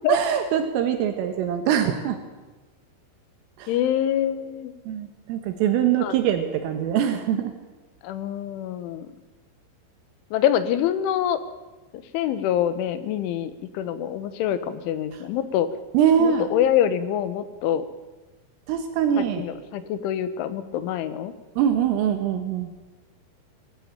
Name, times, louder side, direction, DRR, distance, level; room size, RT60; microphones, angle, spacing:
voice 1, 0.1-2.2 3.6-3.7 4.9-7.5 15.9-16.5 18.7-19.5 21.6-22.7, right 9 dB, 80° right, 7 dB, 3.9 m, -23 dB
voice 2, 3.7-4.7 6.0-6.1 8.0-9.1 10.3-11.4 11.9-15.7 16.2-17.9 19.4-21.3, left 10 dB, 75° left, 12 dB, 3.4 m, -25 dB
22.0 x 14.5 x 8.8 m, 1.2 s
omnidirectional pair, 6.0 m